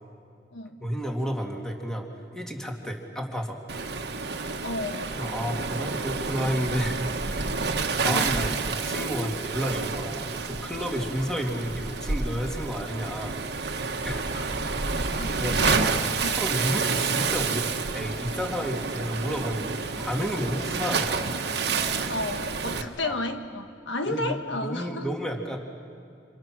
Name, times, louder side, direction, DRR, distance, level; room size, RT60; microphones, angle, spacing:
voice 1, 0.8-2.1 2.3-4.0 5.1-7.5 7.9-13.4 14.0-14.2 15.4-15.9 16.3-21.2 22.7-23.2 24.1-25.6, equal, 5° left, 1 dB, 2.3 m, -31 dB
Waves surf, 3.7-22.8, right 4 dB, 65° right, 1.4 m, -29 dB
voice 2, 4.6-5.1 8.0-8.3 14.3-14.5 15.2-15.3 16.2-16.4 22.1-25.1, left 2 dB, 85° left, 5 dB, 1.5 m, -32 dB
29.5 x 27.5 x 6.2 m, 2.3 s
head